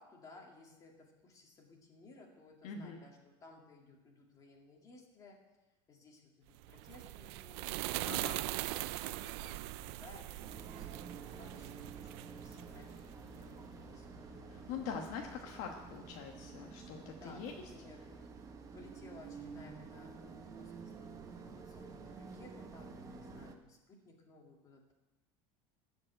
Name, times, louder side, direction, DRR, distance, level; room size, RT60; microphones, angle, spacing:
voice 1, 0.0-5.4 5.9-7.8 8.4-14.1 15.5-15.6 16.8-18.2 18.7-24.9, left 3 dB, 25° left, 0 dB, 2.3 m, -58 dB
voice 2, 2.6-3.0 8.0-8.5 14.5-17.5, left 6 dB, 55° left, 1 dB, 1.3 m, -43 dB
sound 1, 6.6-13.2, right 18 dB, 70° right, 0.4 m, -41 dB
sound 2, 9.2-15.2, right 1 dB, ahead, 5.4 m, -62 dB
sound 3, 10.4-23.6, right 5 dB, 25° right, 1.0 m, -50 dB
14.5 x 5.4 x 9.1 m, 1.0 s
cardioid pair, 155°, 14 cm